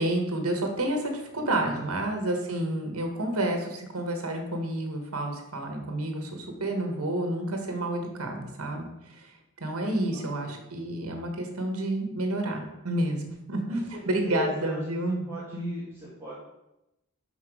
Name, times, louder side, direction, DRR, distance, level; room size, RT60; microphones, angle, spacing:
voice 1, 0.0-8.9 9.1-9.3 9.6-15.8, right 1 dB, 85° right, 3 dB, 1.3 m, -30 dB
voice 2, 1.4-1.9 10.1-10.6 13.7-16.3, left 1 dB, 10° right, -8 dB, 1.7 m, -40 dB
5.9 x 5.4 x 4.8 m, 0.89 s
head